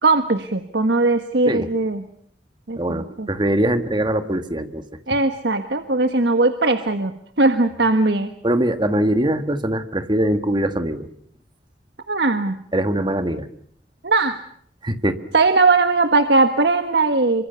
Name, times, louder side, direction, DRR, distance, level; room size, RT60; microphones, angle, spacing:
voice 1, 0.0-2.0 2.7-3.3 5.1-7.1 7.4-8.3 12.1-12.5 14.0-14.4 15.3-17.5, right 3 dB, 70° right, 8 dB, 1.5 m, -19 dB
voice 2, 2.7-4.8 8.4-11.1 12.7-13.5 14.8-15.2, right 1 dB, 25° right, 9 dB, 1.7 m, -22 dB
27.5 x 24.5 x 6.9 m, 0.63 s
head